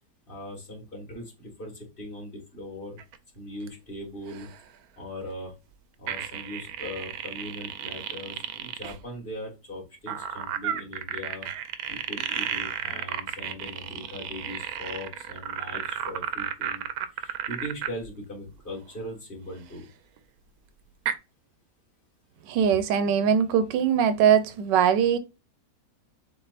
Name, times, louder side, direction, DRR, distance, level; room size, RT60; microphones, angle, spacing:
voice 1, 0.3-3.0 3.3-4.5 5.0-5.5 6.0-11.5 11.9-16.9 17.1-19.9, left 1 dB, 30° left, 2.0 m, -40 dB
insects chirp, 3.0-3.2 3.6-3.7 4.3-4.6 6.1-9.0 10.1-18.1 20.2-20.3 21.1-21.2, right 10 dB, 70° right, 1.0 m, -33 dB
voice 2, 22.5-25.2, right 8 dB, 85° right, 1.3 m, -21 dB
7.3 x 2.6 x 2.5 m
omnidirectional pair, 1.9 m